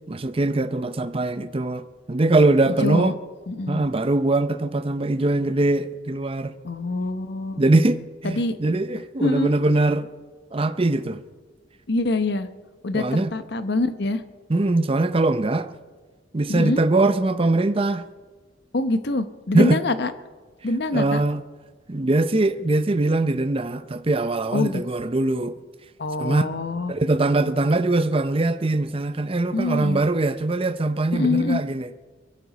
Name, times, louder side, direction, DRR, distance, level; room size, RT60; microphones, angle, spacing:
voice 1, 0.1-3.1 3.7-6.5 7.5-10.1 10.5-11.2 12.9-13.3 14.5-15.7 16.3-18.0 19.5-19.8 20.9-21.4 21.9-25.6 26.2-26.5 26.9-31.9, right 2 dB, 30° right, 0.6 m, -22 dB
voice 2, 2.7-3.1 3.5-3.9 6.6-7.6 8.2-8.6 9.2-9.5 11.9-12.5 12.8-14.2 16.5-16.8 18.7-20.1 20.6-21.2 24.5-24.8 26.0-26.9 29.5-30.0 31.1-31.6, left 2 dB, 60° left, 1.0 m, -25 dB
22.5 x 14.0 x 4.2 m
head